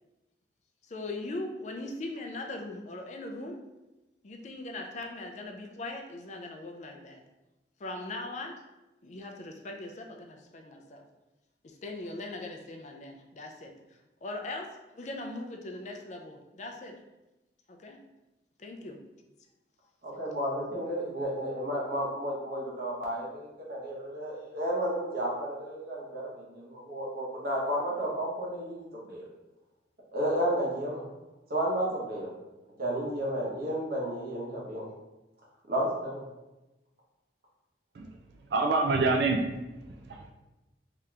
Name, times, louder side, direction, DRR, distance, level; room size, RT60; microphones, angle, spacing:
voice 1, 0.8-3.6 4.2-7.2 7.8-8.6 9.0-11.1 11.6-17.0 17.7-18.0 18.6-19.0, left 2 dB, 40° left, 3 dB, 0.4 m, -40 dB
voice 2, 20.0-29.2 30.1-31.0 31.5-32.3 32.8-34.9 35.7-36.2, right 1 dB, 55° right, -4 dB, 1.1 m, -32 dB
voice 3, 37.9-40.3, right 3 dB, 70° right, 2 dB, 0.4 m, -28 dB
3.6 x 2.8 x 3.3 m, 1.0 s
head